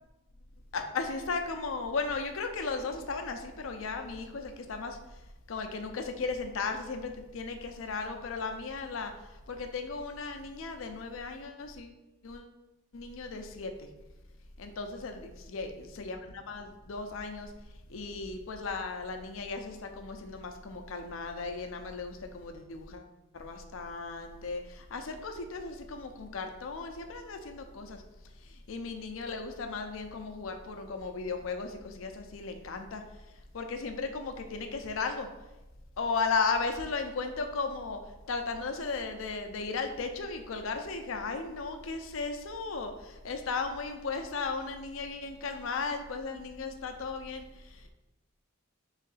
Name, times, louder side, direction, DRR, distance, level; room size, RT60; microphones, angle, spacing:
voice 1, 0.7-11.9 12.2-12.5 12.9-13.9 14.6-17.5 17.9-23.1 23.3-28.0 28.4-33.0 33.5-35.3 36.0-38.0 38.3-47.9, left 4 dB, 75° left, 6 dB, 0.5 m, -36 dB
3.7 x 3.2 x 4.0 m, 0.98 s
head